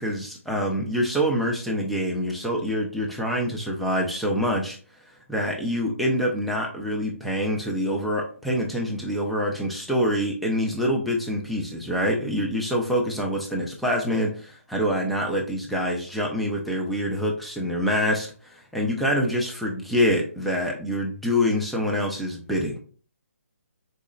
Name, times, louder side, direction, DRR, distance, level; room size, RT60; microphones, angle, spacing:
voice 1, 0.0-4.8 5.3-22.8, equal, ahead, 0 dB, 0.4 m, -26 dB
4.7 x 4.2 x 2.4 m, 0.41 s
hypercardioid pair, 160°, 8 cm